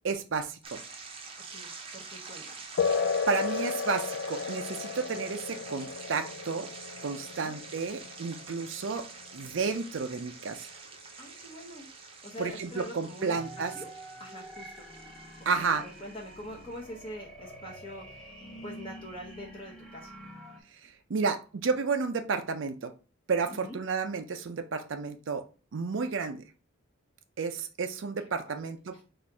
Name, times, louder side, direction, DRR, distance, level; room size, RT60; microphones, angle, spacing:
voice 1, 0.0-0.8 3.3-6.7 7.0-9.1 9.3-10.7 12.4-13.7 15.5-15.8 21.1-22.9 23.3-25.4 25.7-26.4 27.4-29.0, right 5 dB, 70° right, 0.5 m, -31 dB
sound 1, 0.6-16.8, right 4 dB, 30° right, 0.7 m, -47 dB
voice 2, 1.5-2.5 7.3-7.5 11.2-11.9 12.2-13.9 14.2-14.9 15.6-18.3 18.6-20.2 23.5-23.8 28.6-29.0, equal, 25° left, 0.9 m, -44 dB
sound 2, 2.8-10.8, left 5 dB, 60° left, 0.4 m, -34 dB
sound 3, 13.3-20.6, right 1 dB, 5° left, 1.1 m, -47 dB
4.2 x 2.5 x 4.6 m
head